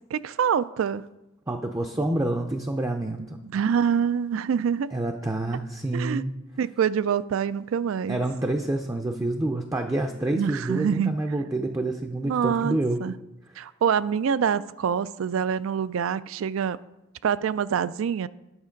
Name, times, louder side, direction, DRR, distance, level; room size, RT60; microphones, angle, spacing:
voice 1, 0.1-1.0 3.5-4.9 5.9-6.2 6.6-8.2 10.3-11.2 12.2-13.1 13.6-16.8 17.2-18.3, right 7 dB, 75° right, 17 dB, 0.3 m, -25 dB
voice 2, 1.5-3.4 4.9-6.3 8.1-13.0, right 2 dB, 15° right, 4 dB, 0.4 m, -28 dB
9.7 x 6.6 x 5.2 m, 0.98 s
head